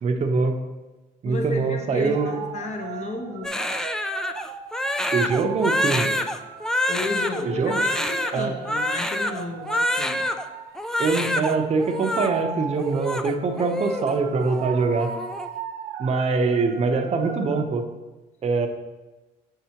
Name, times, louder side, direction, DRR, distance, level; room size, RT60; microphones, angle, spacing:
voice 1, 0.0-0.6 1.2-2.4 5.1-6.3 7.4-7.8 8.3-8.5 11.0-15.1 16.0-17.8 18.4-18.7, right 4 dB, 40° right, 4 dB, 0.8 m, -23 dB
voice 2, 1.2-3.6 6.9-10.3, left 2 dB, 45° left, 3 dB, 0.9 m, -33 dB
sound 1, 1.9-17.6, right 7 dB, 80° right, 0.6 m, -39 dB
Crying sobbing, 3.4-10.4 10.8-11.5 11.8-12.3 12.8-14.2 14.4-14.7 15.0-15.5, left 1 dB, 5° left, 0.3 m, -26 dB
7.2 x 5.7 x 2.9 m, 1.2 s
cardioid pair, 110°, 17 cm